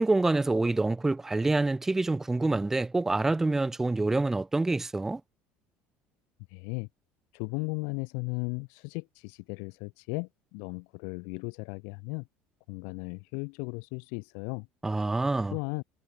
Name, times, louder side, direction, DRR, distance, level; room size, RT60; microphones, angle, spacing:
voice 1, 0.0-5.2 14.8-15.6, right 2 dB, 10° right, 0.5 m, -26 dB
voice 2, 6.5-6.9 7.3-12.3 12.7-14.7 14.9-15.0 15.5-15.8, left 40 dB or more, 80° left, 0.6 m, -36 dB
cardioid pair, 135°, 4 cm